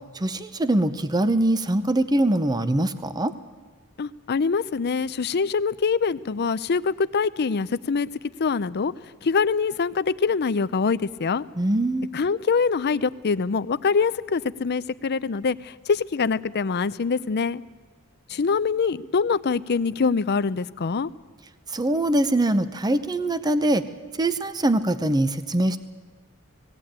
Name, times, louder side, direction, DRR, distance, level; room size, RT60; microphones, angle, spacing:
voice 1, 0.1-3.3 11.6-12.1 21.7-23.8 24.2-25.8, right 1 dB, 20° right, 11 dB, 0.7 m, -23 dB
voice 2, 4.0-8.1 8.4-8.9 9.2-11.4 12.1-17.6 18.3-21.1, left 5 dB, 50° left, 15 dB, 0.5 m, -24 dB
19.0 x 17.0 x 8.8 m, 1.3 s
head